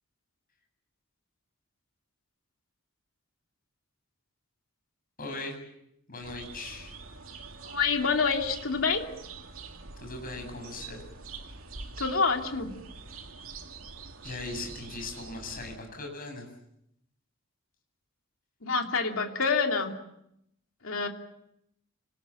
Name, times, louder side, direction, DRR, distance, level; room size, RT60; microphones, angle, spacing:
voice 1, 5.2-5.6 6.1-7.0 10.0-11.0 14.2-16.5, left 2 dB, 45° left, 3 dB, 7.9 m, -39 dB
sound 1, 6.2-15.8, right 4 dB, 85° right, 2.7 m, -45 dB
voice 2, 7.6-9.1 12.0-12.7 18.6-20.0 20.8-21.1, left 5 dB, 75° left, 3 dB, 2.9 m, -27 dB
29.5 x 20.0 x 7.3 m, 0.78 s
head